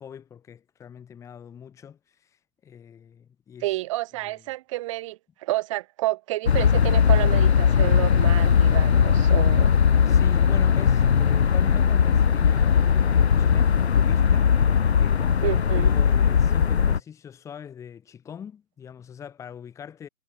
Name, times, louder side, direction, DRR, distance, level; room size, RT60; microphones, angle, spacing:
voice 1, 0.0-2.3 2.6-3.7 4.2-4.3 10.0-14.5 15.0-20.1, left 8 dB, 5° left, 3.4 m, -42 dB
voice 2, 3.6-9.7 15.4-15.9, right 18 dB, 20° right, 3.0 m, -30 dB
sound 1, 6.5-17.0, left 7 dB, 50° left, 0.6 m, -19 dB
hypercardioid pair, 160°, 44 cm